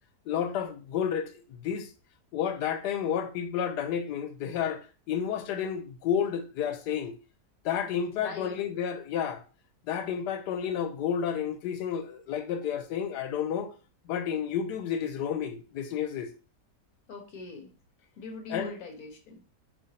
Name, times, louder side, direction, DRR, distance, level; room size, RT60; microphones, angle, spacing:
voice 1, 0.3-1.9 2.3-7.1 7.6-9.4 9.9-13.7 14.1-16.3 18.5-18.8, left 8 dB, 90° left, 1.2 m, -31 dB
voice 2, 8.1-8.6 17.1-17.7 18.2-19.4, left 3 dB, 65° left, 1.2 m, -42 dB
5.1 x 3.0 x 2.7 m
omnidirectional pair, 1.7 m